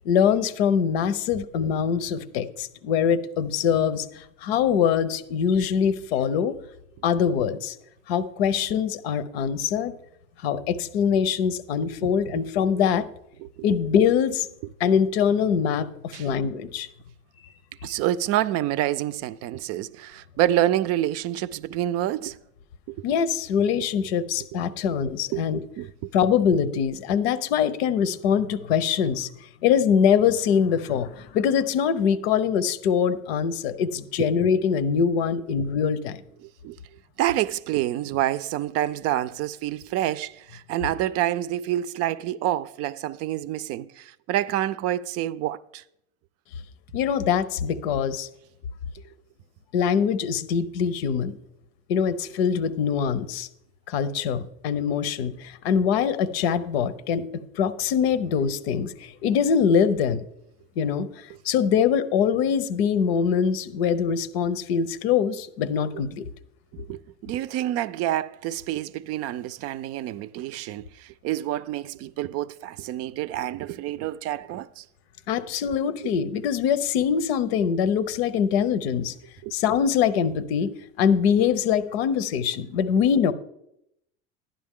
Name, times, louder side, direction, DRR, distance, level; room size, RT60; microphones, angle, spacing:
voice 1, 0.0-6.5 7.0-7.7 8.1-9.9 10.4-13.1 13.6-14.5 14.8-16.9 23.0-25.6 26.1-29.3 29.6-36.2 46.9-48.3 49.7-51.3 51.9-53.5 53.9-60.2 60.8-66.2 75.3-79.1 79.5-80.7 81.0-83.3, left 7 dB, 90° left, 0.8 m, -23 dB
voice 2, 12.0-12.4 13.4-13.5 16.1-16.3 17.8-22.4 22.9-23.0 23.7-23.8 25.3-25.4 25.8-26.1 34.2-34.3 36.4-36.8 37.2-45.8 66.7-74.8 76.0-76.1 79.4-79.5, right 13 dB, 55° right, 0.5 m, -28 dB
11.5 x 10.0 x 3.7 m
supercardioid pair, 125°, 30 cm